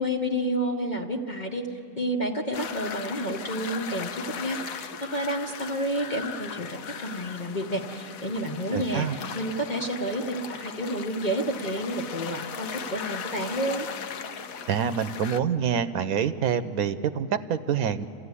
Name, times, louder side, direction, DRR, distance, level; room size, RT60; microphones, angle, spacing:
voice 1, 0.0-13.9, equal, 35° left, -1 dB, 1.1 m, -30 dB
sound 1, 2.5-15.4, left 6 dB, 75° left, 1.2 m, -38 dB
voice 2, 8.7-9.2 14.7-18.1, right 8 dB, 85° right, 11 dB, 1.2 m, -26 dB
28.5 x 15.0 x 9.7 m, 2.6 s
omnidirectional pair, 1.5 m